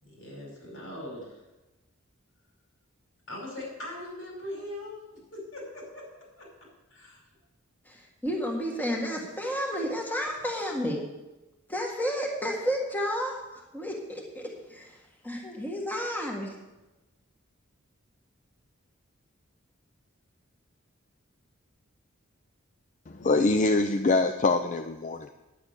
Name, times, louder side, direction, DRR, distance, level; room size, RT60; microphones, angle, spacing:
voice 1, 0.0-1.4 3.3-5.0 5.3-6.0 6.4-6.5 6.9-7.2, left 1 dB, 80° left, -2 dB, 5.4 m, -40 dB
voice 2, 7.9-11.0 11.7-14.4 14.7-15.0 15.2-16.5, equal, 10° left, -1 dB, 1.7 m, -31 dB
voice 3, 23.1-25.3, left 3 dB, 40° left, 8 dB, 0.5 m, -24 dB
10.0 x 9.5 x 6.6 m, 1.0 s
head